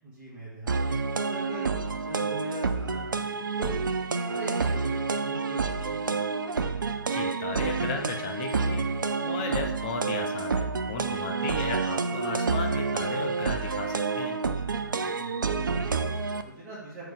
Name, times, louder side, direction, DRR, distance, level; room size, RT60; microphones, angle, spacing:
voice 1, 0.0-3.7 4.2-6.1 11.2-11.4 14.8-17.1, right 1 dB, 10° right, -12 dB, 2.0 m, -42 dB
sound 1, 0.7-16.4, right 4 dB, 65° right, 0.6 m, -29 dB
voice 2, 7.1-8.8 9.2-10.6 10.9-14.4, left 4 dB, 25° left, 3 dB, 0.8 m, -35 dB
7.5 x 4.7 x 3.6 m, 0.88 s
figure-of-eight pair, 140°, 12 cm